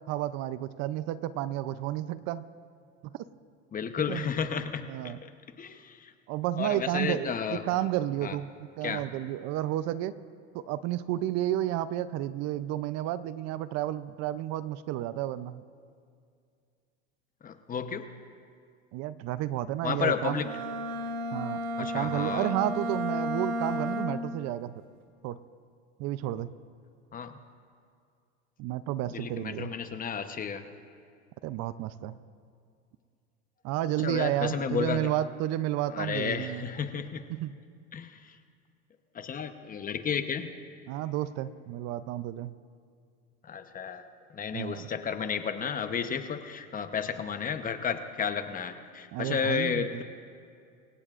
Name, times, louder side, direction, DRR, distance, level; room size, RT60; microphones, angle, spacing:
voice 1, 0.1-2.5 3.0-3.2 4.1-4.3 4.9-5.2 6.3-8.5 8.8-10.1 10.5-15.6 18.9-20.4 21.3-24.7 25.2-25.4 26.0-26.5 28.6-29.7 31.4-32.2 33.6-36.6 37.3-37.5 40.9-42.5 44.5-44.9 49.1-50.0, right 13 dB, 55° right, 14 dB, 0.6 m, -31 dB
voice 2, 3.7-5.1 5.6-6.1 6.6-7.6 8.2-8.3 8.8-9.0 17.4-18.0 19.8-20.5 21.8-22.5 27.1-27.3 29.1-30.6 34.0-35.0 35.9-37.3 37.9-38.1 39.1-40.5 43.5-44.0 44.3-50.0, left 7 dB, 25° left, 8 dB, 0.9 m, -32 dB
Bowed string instrument, 20.3-24.4, equal, 85° right, 1.6 m, -33 dB
26.0 x 16.5 x 2.5 m, 2.3 s
supercardioid pair, 110°, 31 cm